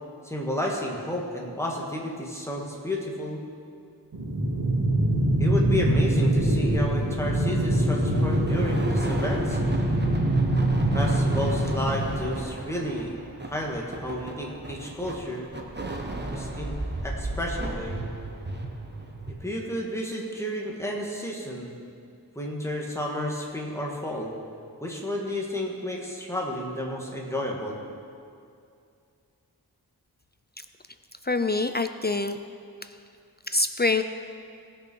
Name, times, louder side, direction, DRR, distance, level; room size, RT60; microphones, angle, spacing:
voice 1, 0.2-3.4 5.4-9.6 10.9-13.2 13.4-15.5 16.3-16.7 17.0-18.0 19.3-21.8 22.4-24.3 24.8-27.8, left 1 dB, 5° left, -2 dB, 1.9 m, -31 dB
sound 1, 4.1-12.1, right 1 dB, 85° right, 2.9 m, -24 dB
sound 2, 6.7-19.3, right 2 dB, 25° right, 1.2 m, -35 dB
voice 2, 31.2-32.4 32.8-33.0 33.5-34.0, left 3 dB, 25° left, 9 dB, 0.4 m, -25 dB
18.0 x 6.2 x 4.6 m, 2.4 s
wide cardioid pair, 65°, 38 cm